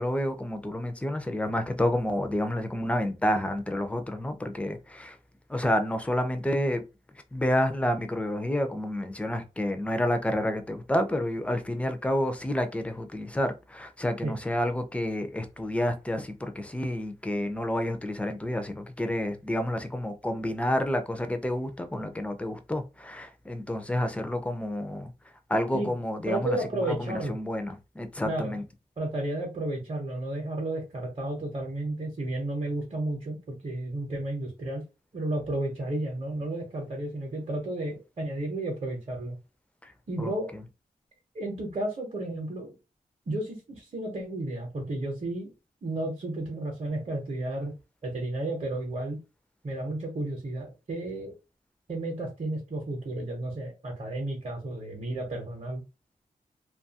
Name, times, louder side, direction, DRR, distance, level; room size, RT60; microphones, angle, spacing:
voice 1, 0.0-5.2 5.5-6.8 7.3-25.1 25.5-28.6 39.8-39.9 40.2-40.6, left 1 dB, 10° left, 0.4 m, -29 dB
voice 2, 26.3-27.3 28.2-28.6 29.0-34.8 35.1-39.4 40.1-40.5 41.3-42.7 43.3-45.5 45.8-47.7 48.0-49.2 49.6-51.4 51.9-55.8, right 1 dB, 45° right, 0.7 m, -32 dB
2.6 x 2.3 x 2.7 m
wide cardioid pair, 140°, 15 cm